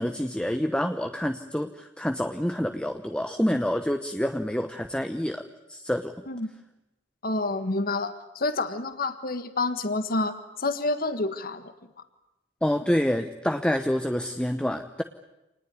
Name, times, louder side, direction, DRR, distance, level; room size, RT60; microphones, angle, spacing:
voice 1, 0.0-6.1 12.6-15.0, equal, 5° left, 7 dB, 0.9 m, -27 dB
voice 2, 7.2-11.7, left 2 dB, 55° left, 10 dB, 1.6 m, -28 dB
27.0 x 19.5 x 9.7 m, 0.94 s
head